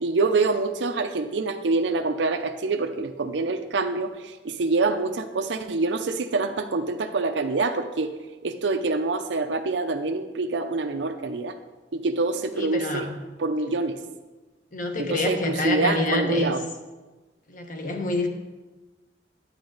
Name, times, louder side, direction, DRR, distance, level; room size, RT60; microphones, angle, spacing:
voice 1, 0.0-4.1 4.4-8.1 8.4-11.5 11.9-13.1 13.4-14.0 15.0-16.6, right 3 dB, 85° right, 6 dB, 0.6 m, -26 dB
voice 2, 12.5-13.2 14.7-16.5 17.5-18.3, left 2 dB, 50° left, 4 dB, 1.2 m, -27 dB
10.5 x 8.5 x 3.9 m, 1.2 s
head